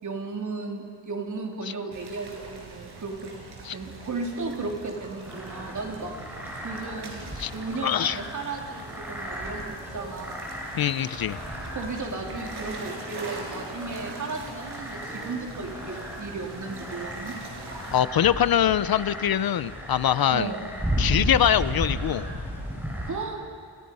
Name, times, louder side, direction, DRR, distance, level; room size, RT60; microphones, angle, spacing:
voice 1, 0.0-3.3 3.7-6.1 6.6-7.3 7.5-10.5 11.7-17.3 20.3-20.7 23.1-23.4, right 3 dB, 45° right, 1 dB, 3.5 m, -34 dB
sound 1, 1.9-18.0, right 3 dB, 65° right, 5.5 m, -43 dB
sound 2, 5.3-23.1, equal, 5° right, 5.7 m, -35 dB
voice 2, 7.8-8.2 10.7-11.4 17.9-20.5 21.0-22.3, left 10 dB, 55° left, 15 dB, 0.6 m, -23 dB
29.0 x 27.5 x 5.5 m, 2.1 s
wide cardioid pair, 155°, 43 cm